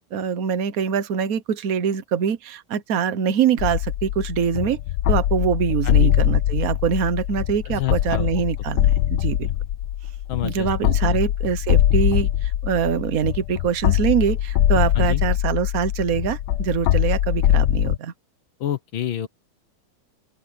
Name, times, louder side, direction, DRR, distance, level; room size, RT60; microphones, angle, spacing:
voice 1, 0.1-4.8 5.1-9.5 10.4-18.1, right 7 dB, 50° right, 1.3 m, -24 dB
sound 1, 3.6-18.0, left 12 dB, 65° left, 1.1 m, -22 dB
voice 2, 5.8-6.1 7.7-8.3 10.3-11.2 15.0-15.2 18.6-19.3, left 11 dB, 80° left, 2.0 m, -29 dB
open air
omnidirectional pair, 2.2 m